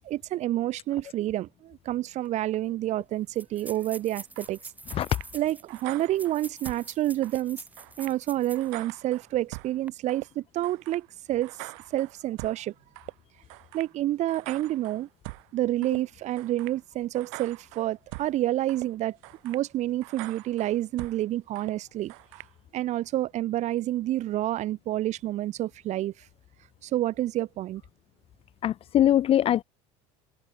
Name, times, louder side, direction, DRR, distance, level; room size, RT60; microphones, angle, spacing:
voice 1, 0.0-4.6 5.3-7.6 8.0-11.5 11.9-12.7 13.7-15.1 15.5-19.2 19.4-22.1 22.7-26.1 26.8-27.8, right 14 dB, 45° right, 0.5 m, -29 dB
sound 1, 2.3-2.4 2.5-2.6 3.3-8.8 9.2-9.3 9.7-9.9, right 2 dB, 10° right, 1.2 m, -45 dB
sound 2, 4.4-4.5 4.9-5.3 5.7-6.9 7.2-7.4 7.8-8.2 8.5-9.7 10.1-10.3 10.6-11.0 11.4-12.6 13.0-13.1 13.5-13.9 14.3-15.5 15.8-16.0 16.4-16.8 17.1-18.3 18.7-18.9 19.2-19.6 20.0-21.2 21.5-21.7 22.1-22.5, right 32 dB, 75° right, 1.6 m, -43 dB
voice 2, 28.6-29.6, left 11 dB, 35° left, 0.4 m, -22 dB
supercardioid pair, 95°, 17 cm